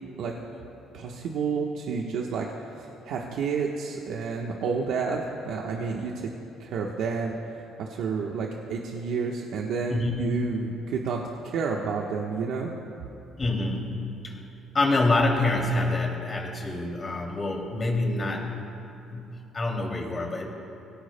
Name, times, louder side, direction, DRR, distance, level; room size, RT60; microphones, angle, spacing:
voice 1, 0.9-2.4 2.8-6.3 6.6-7.4 7.8-11.2 11.4-12.7, right 5 dB, 75° right, -1 dB, 1.2 m, -30 dB
voice 2, 9.9-10.2 13.4-14.4 14.7-18.5 19.1-20.5, left 2 dB, 30° left, 0 dB, 2.7 m, -26 dB
25.0 x 17.5 x 2.2 m, 2.9 s
cardioid pair, 100°, 0 cm